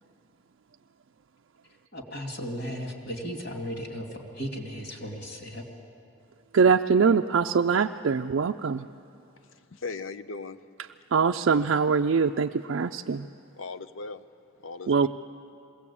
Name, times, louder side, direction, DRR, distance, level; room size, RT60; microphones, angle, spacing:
voice 1, 1.6-5.6, equal, 55° left, 2.6 m, -36 dB
voice 2, 6.5-8.9 11.1-13.3 14.9-15.1, right 5 dB, 65° right, 0.4 m, -23 dB
voice 3, 9.7-10.6 13.6-14.3 14.6-15.1, left 4 dB, 70° left, 0.7 m, -38 dB
21.5 x 17.0 x 8.6 m
head